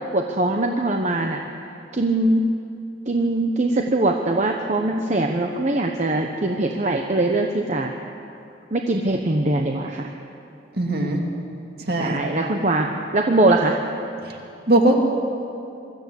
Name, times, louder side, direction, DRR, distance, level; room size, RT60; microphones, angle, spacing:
voice 1, 0.1-1.4 1.9-2.4 3.1-7.9 8.7-10.1 12.0-13.8, right 2 dB, 40° right, 2 dB, 1.0 m, -22 dB
voice 2, 10.8-11.2 11.9-12.2 14.7-14.9, right 1 dB, 55° right, 1 dB, 2.6 m, -19 dB
23.0 x 13.5 x 8.3 m, 2.7 s
head